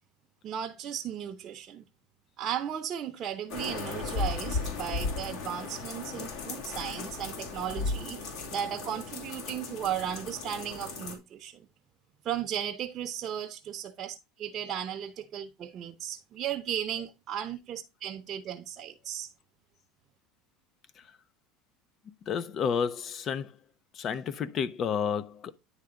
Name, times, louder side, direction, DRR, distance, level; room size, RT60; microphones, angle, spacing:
voice 1, 0.4-1.8 2.4-11.6 12.2-19.3, right 10 dB, 35° right, 0.8 m, -35 dB
sound 1, 3.5-11.1, left 4 dB, 60° left, 2.4 m, -36 dB
voice 2, 22.3-23.6 23.9-25.5, left 7 dB, 35° left, 0.6 m, -30 dB
9.7 x 3.5 x 5.0 m
supercardioid pair, 135°, 0 cm